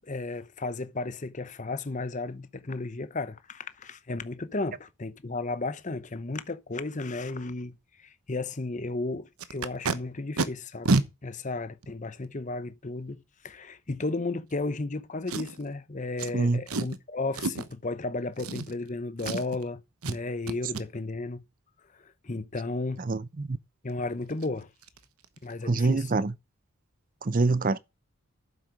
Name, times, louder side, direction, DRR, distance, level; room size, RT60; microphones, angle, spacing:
voice 1, 0.0-7.8 8.0-13.2 13.4-19.8 20.1-21.4 22.2-23.0 23.8-24.7 25.4-26.1, left 3 dB, 35° left, 0.8 m, -34 dB
Packing tape duct tape, 9.4-10.0 10.4-10.5 10.9-11.1 11.8-11.9 15.3-15.7 16.2-16.3 16.7-17.0 17.3-17.7 18.4-18.9 19.2-19.6 20.0-20.2 20.5-20.8 23.9-24.0 24.3-24.5 24.8-25.0 25.2-25.5 25.8-25.9, right 3 dB, 75° right, 1.1 m, -29 dB
voice 2, 23.0-23.6 25.7-26.3 27.2-27.8, right 3 dB, 40° right, 0.6 m, -25 dB
9.5 x 7.4 x 5.1 m
head